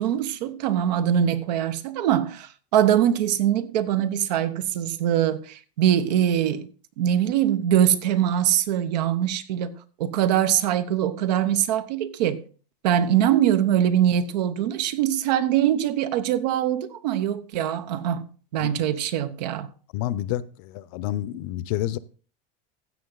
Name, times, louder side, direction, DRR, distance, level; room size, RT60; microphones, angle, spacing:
voice 1, 0.0-6.7 7.0-12.4 12.8-18.3 18.5-19.7, right 10 dB, 85° right, 1.1 m, -23 dB
voice 2, 19.9-22.0, left 13 dB, 55° left, 0.6 m, -29 dB
15.5 x 6.1 x 3.9 m
supercardioid pair, 155°, 21 cm